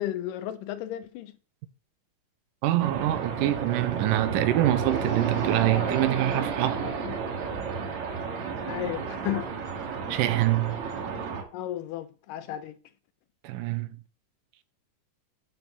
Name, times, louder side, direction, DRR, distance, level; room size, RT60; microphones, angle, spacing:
voice 1, 0.0-1.3 6.8-7.1 8.7-9.5 11.5-12.8, left 12 dB, 80° left, 2.4 m, -33 dB
voice 2, 2.6-6.9 10.1-10.8 13.4-14.0, right 15 dB, 80° right, 2.2 m, -25 dB
sound 1, 2.8-11.4, right 5 dB, 65° right, 2.7 m, -32 dB
7.0 x 6.1 x 6.6 m
omnidirectional pair, 3.9 m